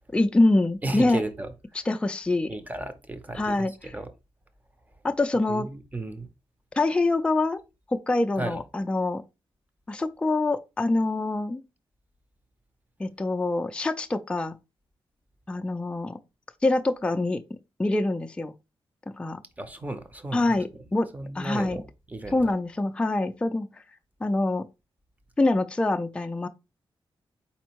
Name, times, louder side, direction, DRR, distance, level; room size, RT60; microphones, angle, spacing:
voice 1, 0.1-1.2 1.9-2.5 3.4-3.9 5.0-5.7 6.8-7.6 7.9-9.2 9.9-11.6 13.0-14.5 15.5-16.2 16.6-17.4 17.8-18.5 19.1-19.4 20.3-21.1 21.3-21.8 22.3-23.7 24.2-24.7 25.4-26.5, left 2 dB, 10° left, 0.3 m, -25 dB
voice 2, 0.8-1.5 2.5-4.1 5.5-6.3 8.4-8.6 19.6-20.5 21.1-22.5, right 2 dB, 15° right, 0.7 m, -34 dB
4.3 x 4.2 x 2.9 m
wide cardioid pair, 150°, 9 cm